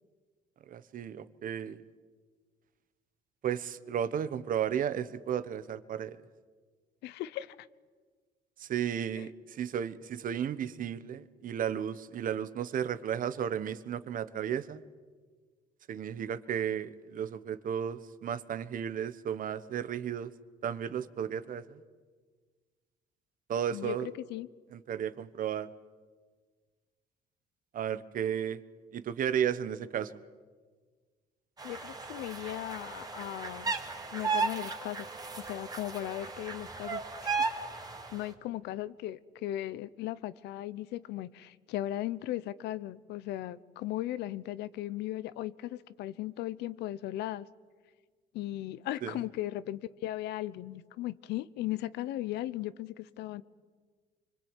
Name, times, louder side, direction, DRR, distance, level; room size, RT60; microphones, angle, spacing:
voice 1, 0.7-1.8 3.4-6.2 8.6-14.8 15.9-20.3 20.6-21.8 23.5-24.1 24.7-25.7 27.7-28.6 28.9-30.1 49.0-49.2, right 9 dB, 55° right, 14 dB, 1.3 m, -34 dB
voice 2, 7.0-7.7 9.2-9.3 23.7-24.5 31.6-33.7 34.1-35.1 35.4-37.8 38.1-47.5 48.3-53.4, left 14 dB, 85° left, 18 dB, 0.9 m, -37 dB
sound 1, 31.6-38.2, right 4 dB, 20° right, 3.0 m, -35 dB
25.0 x 25.0 x 9.1 m, 1.5 s
cardioid pair, 110°, 17 cm